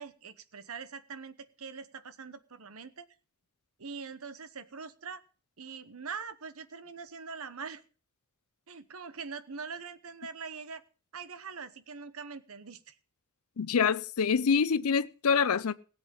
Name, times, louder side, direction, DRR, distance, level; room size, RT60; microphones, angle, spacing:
voice 1, 0.0-3.0 3.8-5.2 5.6-7.8 8.7-10.8 11.1-13.0, right 5 dB, 75° right, 1.0 m, -43 dB
voice 2, 13.6-15.7, left 6 dB, 85° left, 0.5 m, -26 dB
17.5 x 8.0 x 5.5 m
head